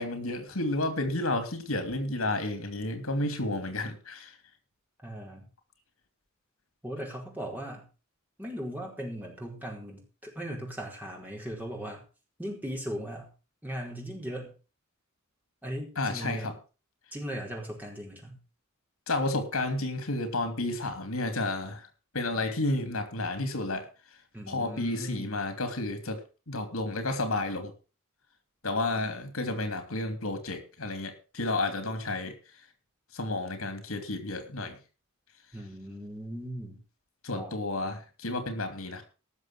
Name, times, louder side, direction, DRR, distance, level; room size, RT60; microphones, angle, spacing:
voice 1, 0.0-4.3 16.0-16.5 19.1-21.8 22.1-23.9 24.5-26.2 26.5-27.7 28.6-32.3 33.1-34.8 37.2-39.0, left 2 dB, 80° left, 8 dB, 2.9 m, -31 dB
voice 2, 5.0-5.5 6.8-7.9 8.4-12.0 12.4-13.3 13.6-14.5 15.6-16.6 17.1-18.4 24.3-25.4 35.5-36.8 37.3-37.6, equal, 10° right, 0 dB, 4.5 m, -38 dB
17.5 x 6.7 x 6.1 m, 0.34 s
head